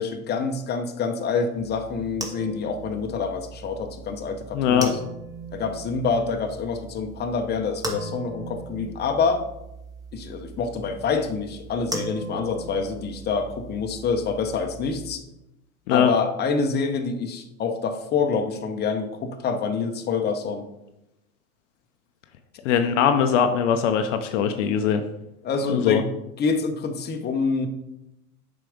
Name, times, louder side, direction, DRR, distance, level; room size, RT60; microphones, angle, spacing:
voice 1, 0.0-4.9 5.5-9.5 10.1-15.2 15.9-20.7 25.4-26.1 26.4-27.7, left 5 dB, 20° left, 5 dB, 1.0 m, -26 dB
sound 1, 1.6-15.1, right 2 dB, 10° right, 1.5 m, -38 dB
voice 2, 4.5-5.0 15.9-16.1 22.6-25.0 25.7-26.0, left 8 dB, 55° left, 7 dB, 0.8 m, -21 dB
7.5 x 4.9 x 5.1 m, 0.89 s
hypercardioid pair, 95°, 45 cm